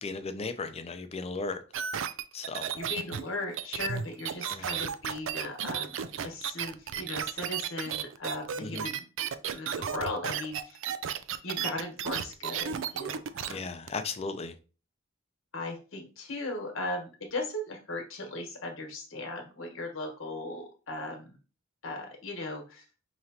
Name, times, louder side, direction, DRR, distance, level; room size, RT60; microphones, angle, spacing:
voice 1, 0.0-1.6 2.3-2.7 4.5-4.8 8.6-8.9 13.5-14.5, left 3 dB, 30° left, 0.5 m, -36 dB
sound 1, 1.7-13.5 13.9-14.0, right 8 dB, 70° right, 0.4 m, -33 dB
voice 2, 2.7-6.0 6.2-9.0 9.5-10.8 11.4-13.6 15.5-21.3 21.8-22.8, left 2 dB, 80° left, 1.3 m, -37 dB
5.1 x 3.0 x 2.8 m
head